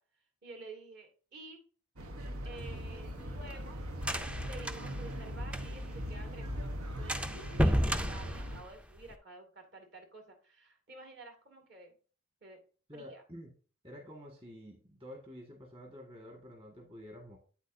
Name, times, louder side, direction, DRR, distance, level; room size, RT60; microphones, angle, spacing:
voice 1, 0.4-1.6 2.4-3.8 4.5-12.0 12.4-12.6 12.9-13.2, right 2 dB, 50° right, 3 dB, 2.1 m, -51 dB
sound 1, 2.0-8.6, equal, 90° right, 1.1 m, -40 dB
sound 2, 2.6-6.0 6.3-6.4 6.7-6.8 7.1-9.1, equal, 5° right, 0.3 m, -33 dB
voice 2, 12.9-13.5 13.8-17.4, equal, 25° right, 0 dB, 1.7 m, -49 dB
8.7 x 8.2 x 2.7 m, 0.38 s
head